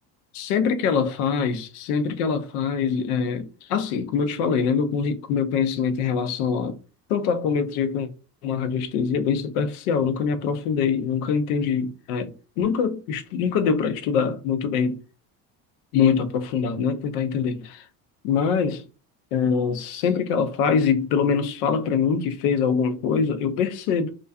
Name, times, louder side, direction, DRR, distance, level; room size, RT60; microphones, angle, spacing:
voice 1, 0.3-6.8 7.1-8.1 8.4-15.0 15.9-17.8 18.2-18.8 19.3-24.1, left 6 dB, 70° left, 0.7 m, -24 dB
2.4 x 2.3 x 2.3 m
hypercardioid pair, 65°, 48 cm